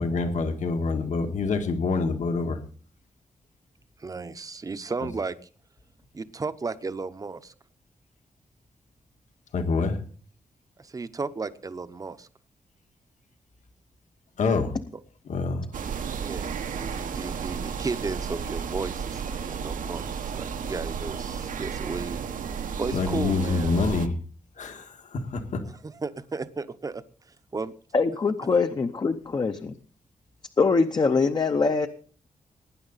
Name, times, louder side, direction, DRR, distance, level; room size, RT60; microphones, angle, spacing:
voice 1, 0.0-2.6 9.5-10.0 14.4-14.7 15.3-15.7 22.9-24.1 24.6-25.6, left 4 dB, 65° left, 6 dB, 1.7 m, -26 dB
voice 2, 4.0-5.4 6.1-7.5 10.8-12.3 16.2-22.2 22.8-23.7 25.8-27.0 27.5-27.7, right 4 dB, 25° right, 12 dB, 0.8 m, -34 dB
sound 1, 15.7-24.1, right 6 dB, 80° right, 1.1 m, -33 dB
voice 3, 27.9-29.8 30.6-31.9, left 4 dB, 30° left, 7 dB, 0.8 m, -23 dB
19.0 x 9.9 x 4.1 m, 0.42 s
wide cardioid pair, 160°, 14 cm